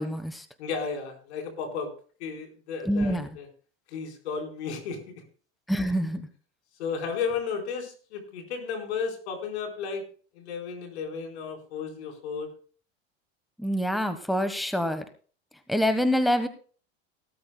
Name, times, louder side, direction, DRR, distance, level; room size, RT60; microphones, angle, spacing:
voice 1, 0.0-0.4 2.9-3.3 5.7-6.3 13.6-15.0 15.7-16.5, equal, ahead, 10 dB, 1.2 m, -26 dB
voice 2, 0.6-1.9 2.2-3.5 3.9-5.2 6.8-10.0 10.3-12.5, left 5 dB, 80° left, 2 dB, 4.4 m, -33 dB
18.0 x 13.0 x 2.2 m, 0.40 s
hypercardioid pair, 90°, 33 cm